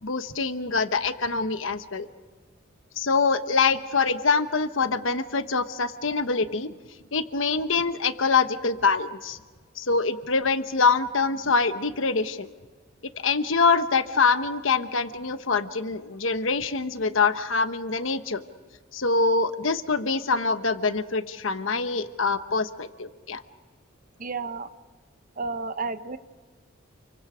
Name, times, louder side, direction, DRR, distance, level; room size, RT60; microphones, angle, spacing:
voice 1, 0.0-2.1 3.0-6.7 7.1-9.4 9.8-12.5 13.2-18.4 18.9-23.4, left 4 dB, 70° left, 10 dB, 1.1 m, -24 dB
voice 2, 24.2-24.7 25.4-26.2, right 4 dB, 40° right, 11 dB, 0.9 m, -31 dB
29.0 x 24.0 x 5.1 m, 1.4 s
head